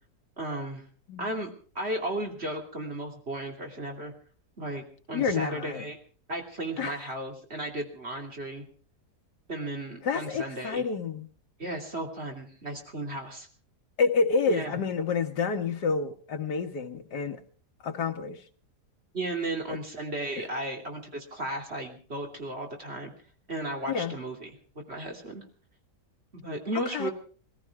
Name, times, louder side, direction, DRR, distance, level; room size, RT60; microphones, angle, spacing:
voice 1, 0.4-0.8 1.2-4.1 4.6-6.0 6.3-8.6 9.5-10.8 11.6-13.5 14.5-14.7 19.1-23.1 23.5-24.6 24.9-25.4 26.3-27.1, right 1 dB, 35° right, 3.1 m, -35 dB
voice 2, 5.1-5.8 6.8-7.0 10.0-11.3 14.0-17.4 17.8-18.4 23.9-24.1 26.8-27.1, left 5 dB, 75° left, 1.9 m, -28 dB
20.0 x 15.0 x 4.7 m
omnidirectional pair, 1.8 m